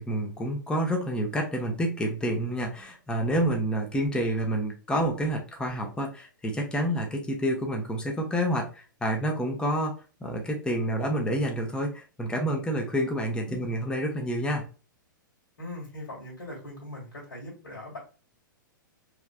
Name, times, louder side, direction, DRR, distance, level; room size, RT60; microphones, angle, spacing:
voice 1, 0.0-9.9 10.2-14.6, right 1 dB, 10° left, 1 dB, 1.0 m, -28 dB
voice 2, 15.6-18.0, left 1 dB, 65° left, -5 dB, 1.9 m, -40 dB
4.6 x 3.2 x 2.2 m, 0.34 s
figure-of-eight pair, 105°, 11 cm